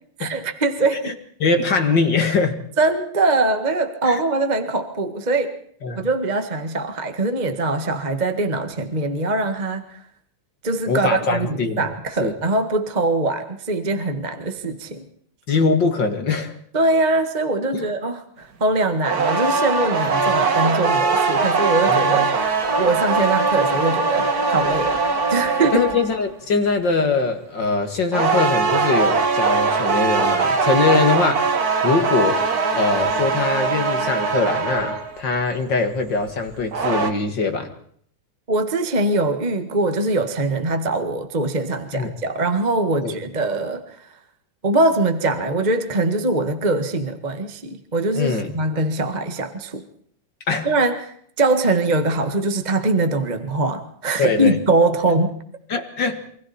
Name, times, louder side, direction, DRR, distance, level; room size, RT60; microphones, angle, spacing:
voice 1, 0.2-1.1 2.8-5.5 5.9-10.0 10.6-15.0 16.7-22.3 22.8-25.0 25.3-25.9 38.5-44.1 44.6-49.8 50.6-55.4, right 2 dB, 25° right, 7 dB, 1.0 m, -22 dB
voice 2, 1.4-2.6 4.1-4.2 5.8-6.1 10.9-11.8 12.2-12.3 15.5-16.5 17.7-17.9 20.3-20.4 21.9-22.3 25.7-31.5 31.8-32.5 32.7-37.7 41.9-42.1 43.0-43.2 48.1-48.5 50.5-50.7 54.2-54.5 55.7-56.2, left 4 dB, 40° left, 6 dB, 2.1 m, -22 dB
sound 1, 19.0-26.2 28.1-35.2 36.5-37.1, right 4 dB, 40° right, 1.5 m, -21 dB
28.0 x 24.5 x 4.4 m, 0.63 s
omnidirectional pair, 3.7 m